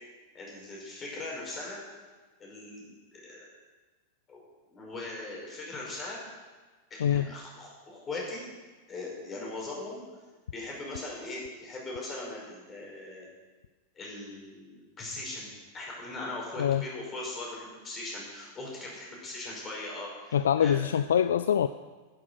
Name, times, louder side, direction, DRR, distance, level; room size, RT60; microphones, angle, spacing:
voice 1, 0.3-1.8 2.4-3.5 4.3-4.4 4.7-6.2 6.9-8.4 8.9-10.0 10.5-13.3 14.0-15.5 15.7-20.9, left 2 dB, 25° left, -3 dB, 5.2 m, -40 dB
voice 2, 20.3-21.7, left 9 dB, 65° left, 13 dB, 0.3 m, -24 dB
11.0 x 10.5 x 6.5 m, 1.3 s
figure-of-eight pair, 90°, 0 cm